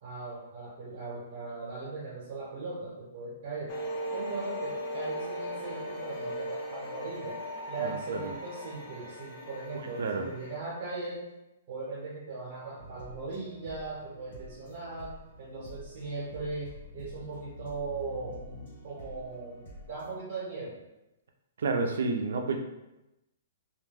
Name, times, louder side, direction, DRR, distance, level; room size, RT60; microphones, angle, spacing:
voice 1, 0.0-3.7 4.1-7.4 7.7-11.3 11.7-20.8, right 3 dB, 40° right, -7 dB, 0.9 m, -39 dB
sound 1, 3.7-10.6, equal, 30° left, 0.4 m, -38 dB
voice 2, 7.8-8.3 9.8-10.3 21.6-22.6, right 3 dB, 75° right, 4 dB, 0.4 m, -30 dB
sound 2, 12.8-20.2, left 1 dB, 60° left, 1.1 m, -48 dB
2.3 x 2.1 x 3.3 m, 0.95 s
hypercardioid pair, 165°, 0 cm